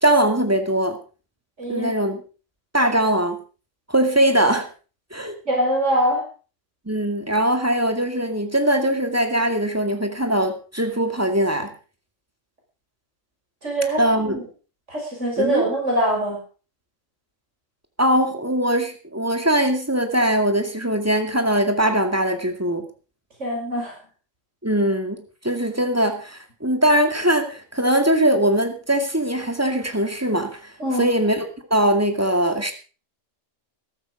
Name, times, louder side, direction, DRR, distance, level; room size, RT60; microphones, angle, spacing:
voice 1, 0.0-1.0 1.7-2.2 2.7-3.4 3.9-4.7 5.1-5.3 6.9-11.7 14.0-14.4 15.4-15.7 18.0-22.8 24.6-30.7 31.0-32.7, right 1 dB, 10° right, 5 dB, 2.2 m, -21 dB
voice 2, 1.6-1.9 5.5-6.2 13.6-14.0 14.3-14.4 14.9-16.4 23.4-23.9 30.8-31.1, right 1 dB, 65° right, 0 dB, 6.1 m, -23 dB
14.5 x 12.5 x 5.0 m, 0.37 s
omnidirectional pair, 1.3 m